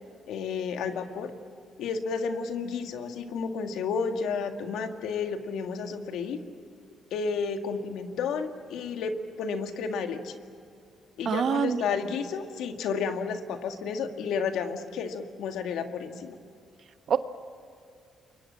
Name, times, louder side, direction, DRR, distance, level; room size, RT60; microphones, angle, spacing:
voice 1, 0.3-1.3 1.8-6.4 7.1-9.1 9.4-10.4 11.2-16.4, left 5 dB, 80° left, 6 dB, 1.9 m, -31 dB
voice 2, 11.2-11.8 17.1-17.2, right 7 dB, 60° right, 10 dB, 1.2 m, -25 dB
29.0 x 23.5 x 7.6 m, 2.4 s
cardioid pair, 90°, 0 cm